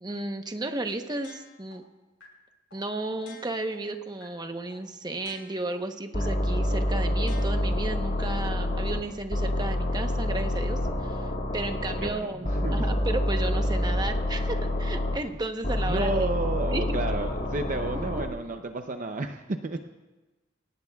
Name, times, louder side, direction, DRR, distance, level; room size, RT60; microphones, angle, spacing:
voice 1, 0.0-1.8 2.7-16.3 16.7-17.0 17.9-18.2, right 2 dB, 20° right, 6 dB, 1.0 m, -33 dB
sound 1, 1.2-1.7 2.2-2.3 2.7-2.8 3.2-3.7 4.2-4.3 4.7-4.8 5.2-5.7 6.2-6.3 6.7-6.8 7.2-7.7 8.2-8.3, left 4 dB, 75° left, 6.7 m, -50 dB
sound 2, 6.1-9.0 9.3-12.1 12.4-15.2 15.6-18.3, left 1 dB, 45° left, 1.6 m, -27 dB
voice 2, 12.0-12.8 15.8-19.8, right 2 dB, 40° right, 6 dB, 0.6 m, -32 dB
28.0 x 18.0 x 2.4 m, 1.1 s
head